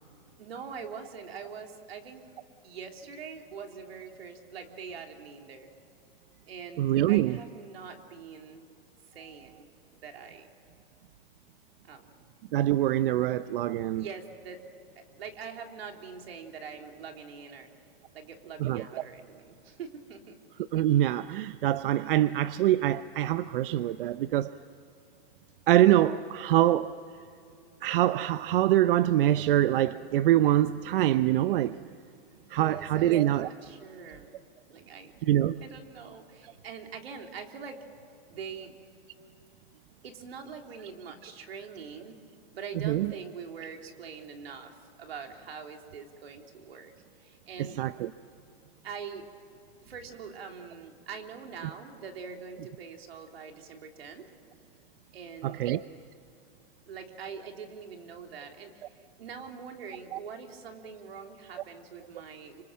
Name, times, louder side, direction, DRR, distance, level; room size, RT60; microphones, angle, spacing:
voice 1, 0.4-2.2 2.6-5.7 6.5-8.6 9.1-9.7 10.0-10.5 11.8-12.0 14.0-14.6 14.9-17.7 18.1-20.4 32.5-34.3 34.7-35.1 35.6-37.8 38.3-38.7 40.0-42.2 42.5-46.9 47.2-47.8 48.8-49.2 49.8-54.3 55.1-55.7 56.9-58.9 59.2-62.6, right 6 dB, 85° right, 3.4 m, -43 dB
voice 2, 6.8-7.4 12.5-14.0 18.6-18.8 20.7-24.5 25.7-26.9 27.8-31.8 32.5-33.5 35.2-35.6 42.8-43.1 47.8-48.1 55.4-55.8 60.1-60.2, right 13 dB, 65° right, 0.6 m, -24 dB
26.0 x 26.0 x 7.5 m
hypercardioid pair, 140°, 30 cm